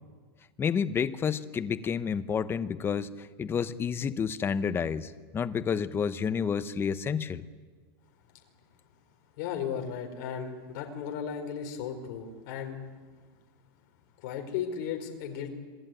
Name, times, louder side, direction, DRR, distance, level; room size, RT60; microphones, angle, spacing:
voice 1, 0.6-7.4, left 7 dB, 20° left, 13 dB, 1.0 m, -30 dB
voice 2, 9.4-12.8 14.2-15.5, left 7 dB, 55° left, 4 dB, 4.6 m, -35 dB
27.0 x 21.0 x 9.2 m, 1.5 s
supercardioid pair, 145°, 13 cm